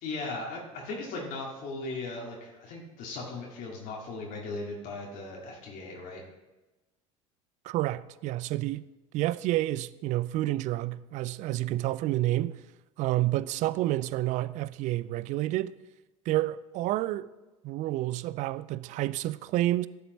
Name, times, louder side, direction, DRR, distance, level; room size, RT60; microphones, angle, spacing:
voice 1, 0.0-6.2, left 3 dB, 55° left, 2.1 m, -38 dB
voice 2, 7.6-8.8 9.1-12.6 13.0-15.7 16.3-17.3 17.6-19.9, right 15 dB, 50° right, 0.4 m, -29 dB
12.0 x 7.1 x 3.1 m
hypercardioid pair, 75°, 17 cm